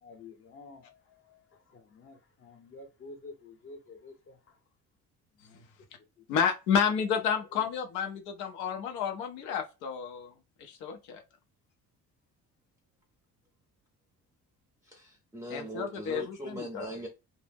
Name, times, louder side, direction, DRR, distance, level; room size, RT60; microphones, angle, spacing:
voice 1, 0.0-4.6 5.3-5.7 6.2-6.3 7.5-7.6, left 3 dB, 45° left, 0.8 m, -50 dB
voice 2, 6.3-10.3 10.6-11.2 15.5-16.9, left 7 dB, 85° left, 0.6 m, -31 dB
voice 3, 14.8-17.1, equal, 10° right, 0.5 m, -40 dB
2.1 x 2.0 x 3.3 m
cardioid pair, 115°, 30 cm